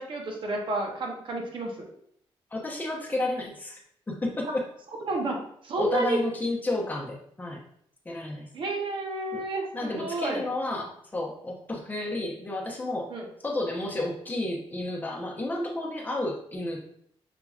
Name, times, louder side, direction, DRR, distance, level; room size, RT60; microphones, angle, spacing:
voice 1, 0.0-1.9 5.0-5.4 5.6-6.2 8.5-10.5 13.1-13.3, right 2 dB, 55° right, 1 dB, 0.9 m, -30 dB
voice 2, 2.5-3.8 4.1-4.6 5.8-7.6 8.0-8.5 9.3-9.4 9.7-13.1 13.4-16.8, left 2 dB, 15° left, -2 dB, 0.9 m, -31 dB
5.9 x 2.8 x 2.4 m, 0.67 s
wide cardioid pair, 135°, 10 cm